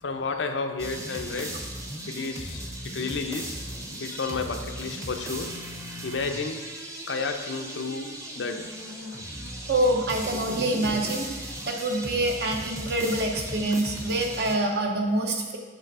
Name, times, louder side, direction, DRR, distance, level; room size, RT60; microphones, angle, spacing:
voice 1, 0.0-1.6 2.0-3.6 4.0-5.5 5.9-6.6 7.1-9.2, left 4 dB, 85° left, 5 dB, 0.6 m, -32 dB
sound 1, 0.8-14.6, right 1 dB, 15° right, 0.7 m, -37 dB
voice 2, 9.7-15.6, right 1 dB, 60° right, 2 dB, 0.9 m, -26 dB
8.1 x 3.3 x 5.3 m, 1.4 s
head